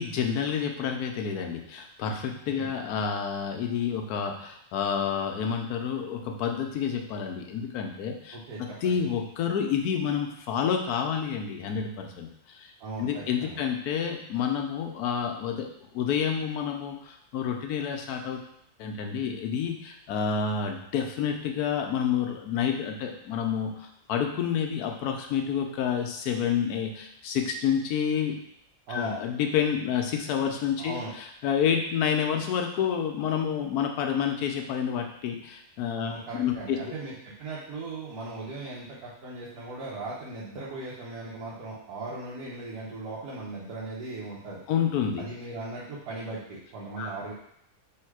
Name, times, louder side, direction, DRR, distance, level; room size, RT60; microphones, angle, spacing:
voice 1, 0.0-12.7 13.0-15.7 15.9-18.4 18.8-28.3 28.9-36.8 44.7-45.2 47.0-47.1, left 7 dB, 80° left, 3 dB, 1.1 m, -29 dB
voice 2, 8.3-9.0 12.8-13.6 28.9-29.2 30.8-31.1 35.9-44.6 45.2-47.3, right 2 dB, 75° right, -7 dB, 1.4 m, -38 dB
3.5 x 2.8 x 4.6 m, 0.72 s
omnidirectional pair, 1.6 m